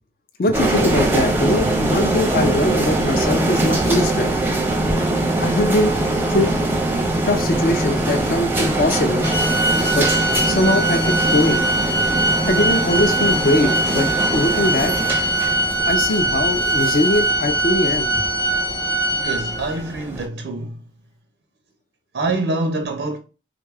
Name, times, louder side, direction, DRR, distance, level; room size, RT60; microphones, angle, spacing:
voice 1, 0.4-4.3 5.4-6.0 6.3-6.5 7.3-9.3 9.9-10.1 10.5-11.6 12.5-14.9 15.9-18.2, left 1 dB, 50° left, 0.4 m, -21 dB
sound 1, 0.5-20.2, right 2 dB, 10° right, 0.5 m, -22 dB
Organ, 9.2-19.9, right 1 dB, 20° left, 0.8 m, -22 dB
voice 2, 19.1-20.8 22.1-23.2, right 2 dB, 65° right, 0.4 m, -25 dB
3.5 x 2.3 x 3.2 m
head